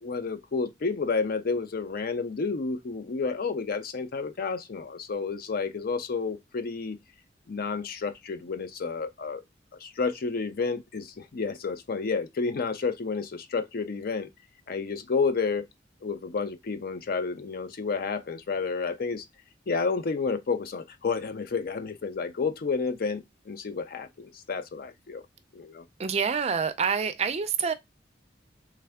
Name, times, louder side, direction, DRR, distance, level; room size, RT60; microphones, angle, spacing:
voice 1, 0.0-7.0 7.5-9.4 9.7-14.3 14.7-15.7 16.0-19.3 19.7-25.2 25.5-25.9, left 4 dB, 50° left, 0.5 m, -30 dB
voice 2, 26.0-27.7, right 6 dB, 35° right, 0.4 m, -27 dB
3.4 x 3.3 x 3.4 m
head